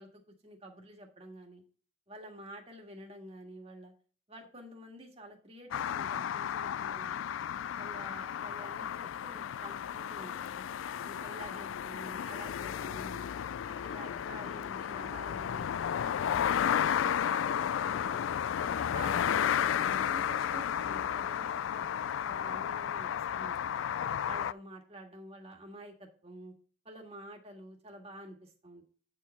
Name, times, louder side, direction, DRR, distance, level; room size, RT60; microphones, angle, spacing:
voice 1, 0.0-1.6 2.1-3.9 4.3-7.2 7.8-10.6 11.0-13.3 13.6-15.7 16.0-18.2 18.5-23.8 24.3-26.5 26.8-28.8, right 1 dB, 30° right, 2 dB, 1.7 m, -49 dB
sound 1, 5.7-24.5, left 9 dB, 85° left, 0.3 m, -33 dB
9.1 x 4.7 x 5.6 m, 0.40 s
head